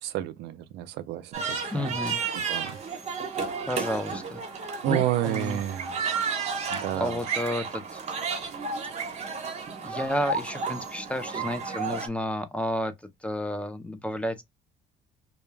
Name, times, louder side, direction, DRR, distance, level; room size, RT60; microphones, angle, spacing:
voice 1, 0.0-2.0 2.3-2.8 4.8-6.0 6.7-7.4, right 13 dB, 85° right, 0.4 m, -30 dB
sound 1, 1.3-12.1, right 5 dB, 40° right, 0.9 m, -32 dB
voice 2, 1.7-2.2 3.7-4.4 4.8-5.6 6.9-8.0 9.1-9.3 9.8-12.9 13.2-14.4, left 1 dB, 5° left, 0.4 m, -31 dB
2.2 x 2.1 x 3.1 m
cardioid pair, 110°, 17 cm